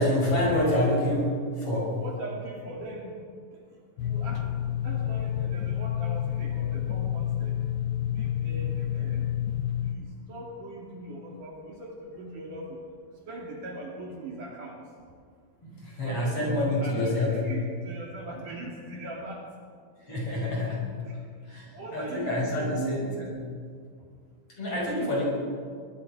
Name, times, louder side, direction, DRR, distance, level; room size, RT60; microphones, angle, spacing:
voice 1, 0.0-2.0 15.6-17.4 20.0-20.9 21.5-23.3 24.6-25.3, left 1 dB, 35° left, -2 dB, 6.9 m, -27 dB
voice 2, 2.0-3.2 3.5-3.6 4.0-4.6 4.8-7.6 8.1-9.3 9.8-12.8 13.3-14.8 16.0-19.4 20.4-21.2 21.7-23.0 24.7-25.2, right 2 dB, 55° right, -1 dB, 3.9 m, -40 dB
sound 1, 4.0-10.0, left 10 dB, 90° left, 3.0 m, -29 dB
24.0 x 20.5 x 6.1 m, 2.1 s
omnidirectional pair, 4.7 m